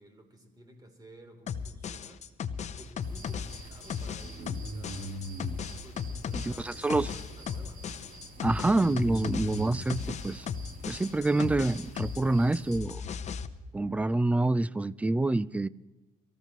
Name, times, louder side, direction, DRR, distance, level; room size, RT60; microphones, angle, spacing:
voice 1, 0.0-2.3 2.7-5.2 5.8-7.9, right 1 dB, 25° right, 3.3 m, -54 dB
Drum n Bass loop (Drum + Perc), 1.5-12.3 12.5-13.5, left 7 dB, 45° left, 0.9 m, -36 dB
sound 1, 3.0-12.8, right 1 dB, 50° right, 3.3 m, -44 dB
voice 2, 6.3-7.1 8.4-10.5 10.9-13.0 13.7-15.7, right 2 dB, 10° right, 0.4 m, -27 dB
24.5 x 14.5 x 3.0 m
cardioid pair, 110°, 17 cm